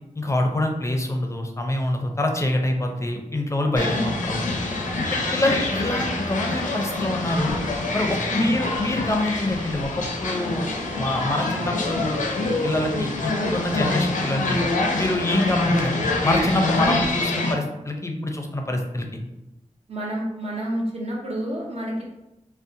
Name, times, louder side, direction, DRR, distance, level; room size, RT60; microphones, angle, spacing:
voice 1, 0.2-4.4 5.1-7.5 7.9-10.7 11.0-12.2 12.6-14.6 15.0-19.2, left 1 dB, 20° left, 3 dB, 0.5 m, -25 dB
sound 1, 3.8-17.5, left 2 dB, 80° left, 0.4 m, -26 dB
voice 2, 3.9-4.3 5.2-5.5 8.3-8.6 16.8-16.9 19.9-22.0, equal, 55° right, -3 dB, 0.8 m, -29 dB
2.5 x 2.1 x 2.6 m, 0.92 s
cardioid pair, 40°, 13 cm